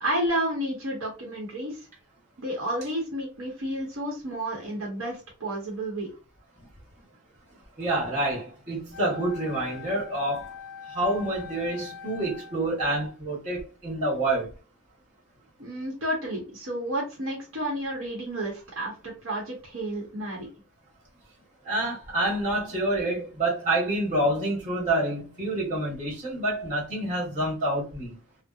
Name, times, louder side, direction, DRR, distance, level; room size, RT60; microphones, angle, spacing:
voice 1, 0.0-1.9 2.4-6.1 15.6-20.5, right 1 dB, 70° right, 0.9 m, -31 dB
voice 2, 7.8-10.6 10.9-14.5 21.6-28.1, right 1 dB, 40° right, 1.3 m, -27 dB
Wind instrument woodwind instrument, 8.9-12.7, left 7 dB, 60° left, 0.5 m, -43 dB
2.7 x 2.0 x 2.3 m
head